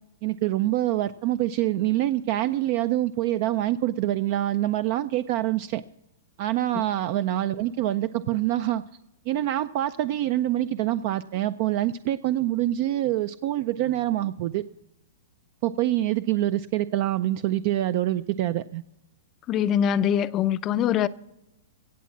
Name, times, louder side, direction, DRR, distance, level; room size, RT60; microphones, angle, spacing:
voice 1, 0.2-5.8 6.4-8.8 9.3-14.6 15.6-18.8, right 14 dB, 45° right, 0.4 m, -25 dB
voice 2, 19.5-21.1, left 9 dB, 25° left, 0.4 m, -23 dB
17.0 x 7.3 x 7.2 m
hypercardioid pair, 150°, 0 cm